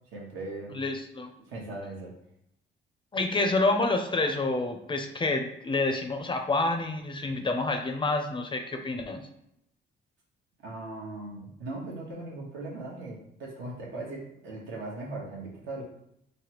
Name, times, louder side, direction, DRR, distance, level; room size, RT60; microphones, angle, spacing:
voice 1, 0.1-0.8 1.4-2.1 10.6-15.8, right 2 dB, 80° right, -2 dB, 1.0 m, -39 dB
voice 2, 0.7-1.3 3.1-9.2, left 2 dB, 25° left, 5 dB, 0.4 m, -28 dB
3.2 x 2.1 x 2.9 m, 0.78 s
cardioid pair, 90°, 20 cm